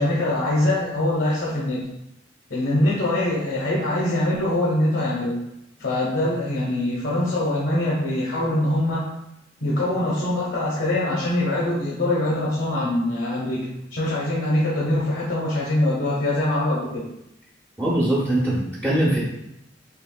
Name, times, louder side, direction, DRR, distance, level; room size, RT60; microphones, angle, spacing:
voice 1, 0.0-1.8 2.5-5.4 5.8-9.1 9.6-17.1, left 1 dB, 75° left, -5 dB, 1.0 m, -23 dB
voice 2, 17.8-19.2, right 1 dB, 10° right, -7 dB, 0.7 m, -21 dB
5.9 x 3.0 x 2.2 m, 0.84 s
head